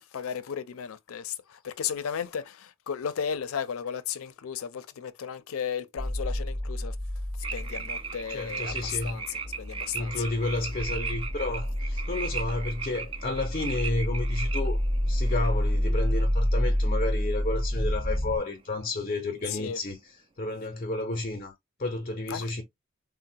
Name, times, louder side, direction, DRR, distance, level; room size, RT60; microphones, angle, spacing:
voice 1, 0.0-7.0 7.4-10.2 19.5-19.8 22.3-22.5, left 7 dB, 85° left, 0.4 m, -35 dB
sound 1, 6.0-18.4, equal, 55° right, 1.0 m, -29 dB
sound 2, 7.4-17.7 17.9-18.3, right 5 dB, 25° right, 0.3 m, -38 dB
voice 2, 8.3-9.2 9.9-21.5 21.8-22.6, left 2 dB, 35° left, 0.5 m, -31 dB
3.7 x 2.0 x 2.7 m
head